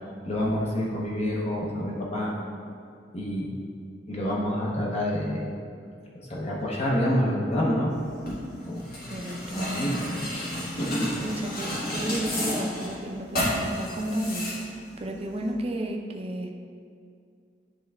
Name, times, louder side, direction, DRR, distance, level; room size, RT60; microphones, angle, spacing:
voice 1, 0.2-2.3 3.1-3.5 4.1-5.5 6.1-7.9 8.7-9.0 9.5-10.0 10.3-10.5 10.8-11.2, equal, 35° left, -4 dB, 0.8 m, -28 dB
sound 1, 7.9-15.5, left 1 dB, 55° left, 1.5 m, -33 dB
voice 2, 9.1-10.2 11.2-16.5, right 1 dB, 35° right, 2 dB, 0.5 m, -33 dB
10.0 x 3.3 x 3.4 m, 2.3 s
head